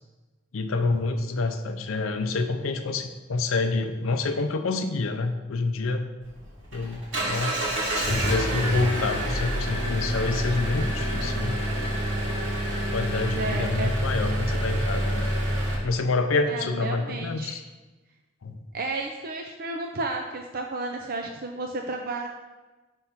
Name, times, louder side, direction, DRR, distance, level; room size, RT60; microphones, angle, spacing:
voice 1, 0.5-6.0 6.7-7.6 7.9-11.6 12.9-15.3 15.8-17.6 18.4-18.6, left 3 dB, 90° left, 7 dB, 0.5 m, -27 dB
Engine, 6.2-15.8, equal, 70° right, 2.1 m, -27 dB
voice 2, 13.2-13.9 16.5-17.6 18.7-22.3, right 2 dB, 45° right, 2 dB, 0.4 m, -32 dB
5.5 x 3.5 x 5.7 m, 1.2 s
head